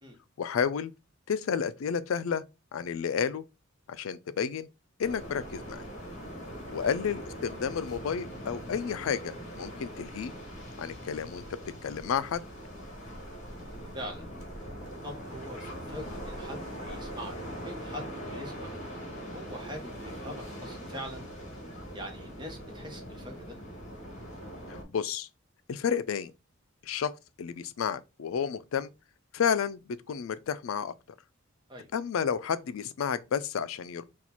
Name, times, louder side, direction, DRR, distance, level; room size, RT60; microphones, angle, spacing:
voice 1, 0.4-0.9 1.3-2.4 2.7-3.4 3.9-4.7 5.0-5.8 6.7-10.3 10.8-11.4 11.8-12.4 24.7-25.3 25.7-26.3 26.8-27.1 27.4-28.9 29.3-30.9 31.9-34.0, left 7 dB, 80° left, 0.4 m, -31 dB
sound 1, 5.0-24.8, equal, 35° left, 1.4 m, -42 dB
voice 2, 15.0-18.8 19.2-21.3 21.9-23.6 31.7-31.9, equal, 20° right, 1.0 m, -43 dB
4.3 x 2.4 x 4.2 m
head